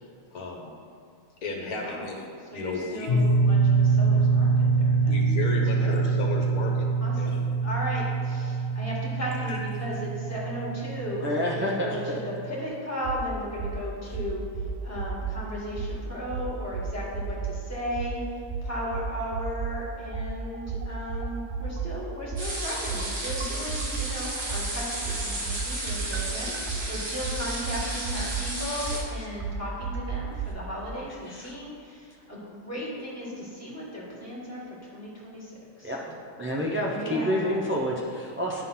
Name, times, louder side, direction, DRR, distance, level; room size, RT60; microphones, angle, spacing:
voice 1, 0.3-0.7 1.4-3.3 5.1-6.9 7.2-7.5 9.5-9.6, left 3 dB, 75° left, 0 dB, 1.5 m, -34 dB
voice 2, 1.5-2.0 2.5-5.2 5.5-6.0 7.0-14.4 14.8-36.2 36.9-37.5, equal, 10° left, -7 dB, 2.0 m, -36 dB
sound 1, 3.1-12.6, right 4 dB, 50° left, 0.7 m, -25 dB
voice 3, 11.2-12.2 31.3-31.5 35.8-36.0 36.4-38.6, equal, 15° right, -4 dB, 0.4 m, -28 dB
sound 2, 13.0-13.2 13.6-13.8 14.1-15.4 15.8-16.0 16.3-17.6 18.0-18.1 18.5-19.8 20.1-24.1 24.5-30.5, right 5 dB, 60° right, 0.9 m, -32 dB
sound 3, 22.4-29.0, right 1 dB, 85° right, 2.2 m, -33 dB
10.5 x 3.9 x 5.7 m, 2.4 s
omnidirectional pair, 1.5 m